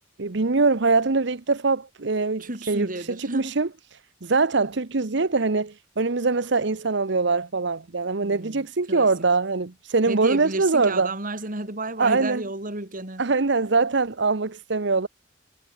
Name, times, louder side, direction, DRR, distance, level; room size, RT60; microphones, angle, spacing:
voice 1, 0.2-2.9 3.2-3.7 4.2-11.1 12.0-12.4 13.2-15.1, right 3 dB, 65° right, 1.0 m, -23 dB
voice 2, 2.4-3.6 8.2-9.1 10.1-13.2, right 2 dB, 45° right, 4.0 m, -32 dB
head